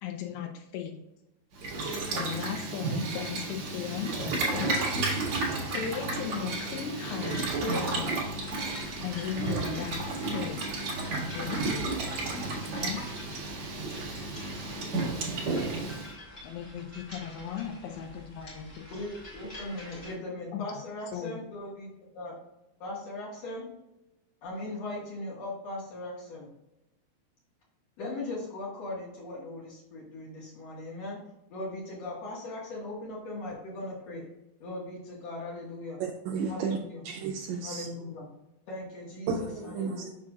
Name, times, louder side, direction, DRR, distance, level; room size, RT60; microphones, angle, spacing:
voice 1, 0.0-1.0 2.1-4.8 5.6-8.2 9.0-10.0 10.3-10.6 11.3-11.9 12.7-13.0 16.4-18.9 20.5-20.6 21.1-21.4, left 8 dB, 90° left, 2 dB, 2.5 m, -36 dB
Boiling, 1.5-16.1, right 3 dB, 55° right, 2.0 m, -32 dB
sound 1, 7.2-20.1, left 1 dB, 50° left, 0.9 m, -48 dB
voice 2, 18.9-22.3 22.8-23.7 24.4-26.5 28.0-31.2 31.5-34.2 34.6-36.0 36.5-37.0 37.6-38.3 38.7-40.1, left 2 dB, 75° left, -5 dB, 1.5 m, -39 dB
voice 3, 36.0-36.8 37.0-37.9 39.3-40.0, right 5 dB, 85° right, 1 dB, 2.6 m, -32 dB
7.2 x 6.1 x 2.4 m, 0.91 s
omnidirectional pair, 5.7 m